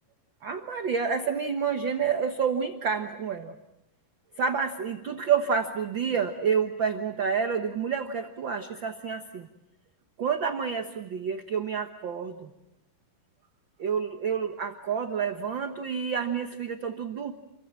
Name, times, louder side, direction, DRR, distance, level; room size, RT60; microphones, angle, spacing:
voice 1, 0.4-3.5 4.4-9.5 10.2-12.5 13.8-17.3, right 6 dB, 55° right, 6 dB, 1.4 m, -29 dB
29.0 x 23.5 x 7.4 m, 0.89 s
omnidirectional pair, 3.8 m